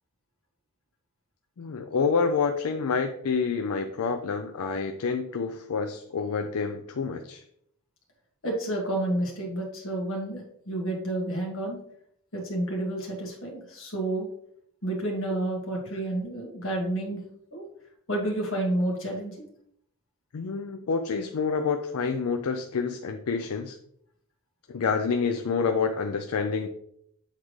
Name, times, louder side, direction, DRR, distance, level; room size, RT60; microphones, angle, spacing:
voice 1, 1.6-7.4 20.3-23.8 24.7-26.7, left 5 dB, 80° left, 6 dB, 0.4 m, -28 dB
voice 2, 8.4-11.8 12.3-14.3 14.8-17.2 17.5-17.6 18.1-19.5, right 1 dB, 60° left, -1 dB, 1.8 m, -30 dB
8.2 x 3.6 x 3.2 m, 0.70 s
head